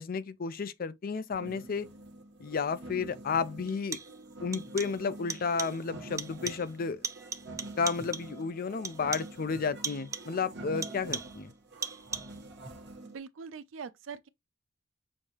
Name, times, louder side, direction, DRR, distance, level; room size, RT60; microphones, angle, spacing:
voice 1, 0.0-1.9 2.4-4.0 4.4-7.0 7.8-11.5, left 5 dB, 50° left, 0.5 m, -32 dB
sound 1, 1.3-13.2, right 2 dB, 65° right, 1.1 m, -46 dB
sound 2, 2.6-2.7 3.7-4.3 4.5-5.0 5.3-5.9 6.2-6.8 7.0-8.4 8.8-9.4 9.8-10.4 10.8-11.5 11.8-12.4, right 5 dB, 15° right, 0.3 m, -39 dB
voice 2, 13.0-14.3, right 6 dB, 80° right, 0.4 m, -43 dB
6.4 x 2.7 x 3.0 m
head